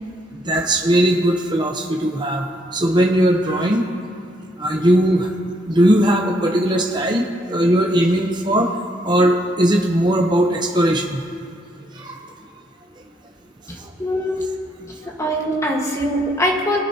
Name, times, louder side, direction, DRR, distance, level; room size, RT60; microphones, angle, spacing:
voice 1, 0.5-2.5 2.7-3.8 4.6-5.3 5.7-11.2 11.9-12.2, right 1 dB, 25° right, 1 dB, 0.7 m, -18 dB
voice 2, 13.7-14.4 15.0-16.8, equal, 15° left, -1 dB, 1.4 m, -22 dB
22.5 x 8.8 x 2.8 m, 2.6 s
head